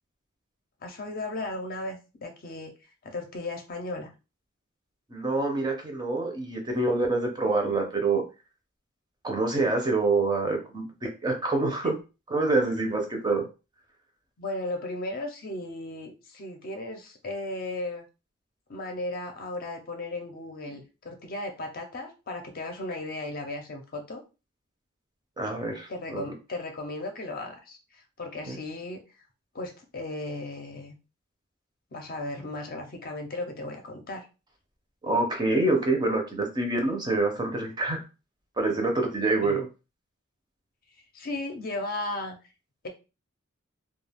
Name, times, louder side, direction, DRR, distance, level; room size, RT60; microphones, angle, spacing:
voice 1, 0.8-2.7 3.0-4.1 14.4-18.1 18.7-24.2 25.9-29.0 29.5-31.0 31.9-34.3 39.4-39.6 41.1-42.4 42.8-42.9, left 2 dB, 45° left, 4 dB, 0.6 m, -36 dB
voice 2, 5.1-8.2 9.2-12.0 12.3-13.4 25.4-26.2 28.5-28.6 35.0-38.0 38.6-39.7, right 2 dB, 20° right, 3 dB, 0.6 m, -26 dB
2.3 x 2.3 x 3.4 m, 0.30 s
head